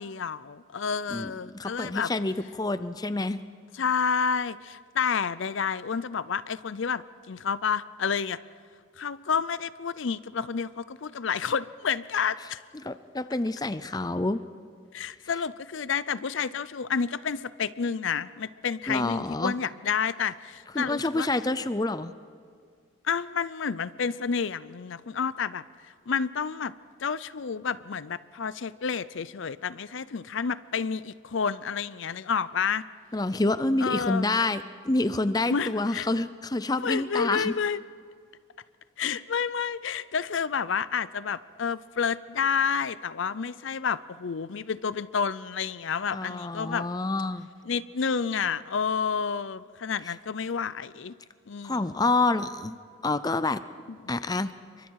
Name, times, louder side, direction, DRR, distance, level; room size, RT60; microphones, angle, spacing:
voice 1, 0.0-2.1 3.7-8.4 9.0-12.6 14.9-21.3 23.0-25.6 26.1-26.7 27.0-32.8 33.8-34.3 35.5-36.1 36.7-37.8 39.0-46.9 47.6-51.1 51.5-51.9 54.0-54.2, left 6 dB, 70° left, 17 dB, 0.5 m, -30 dB
voice 2, 1.1-3.4 12.8-14.4 18.9-19.5 20.7-22.1 33.1-37.5 46.1-47.5 50.1-50.2 51.6-52.8 53.0-53.6 54.1-54.5, left 2 dB, 20° left, 13 dB, 0.5 m, -28 dB
28.5 x 24.0 x 4.8 m, 2.1 s
head